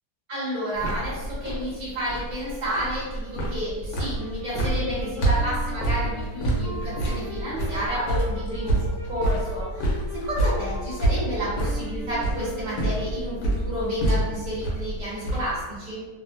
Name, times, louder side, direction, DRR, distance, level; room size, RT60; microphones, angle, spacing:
voice 1, 0.3-16.1, equal, 40° right, -10 dB, 0.8 m, -31 dB
sound 1, 0.8-15.6, right 1 dB, 65° left, 1.1 m, -27 dB
sound 2, 4.1-14.1, equal, 70° right, 0.8 m, -40 dB
2.8 x 2.3 x 2.5 m, 1.3 s
omnidirectional pair, 1.9 m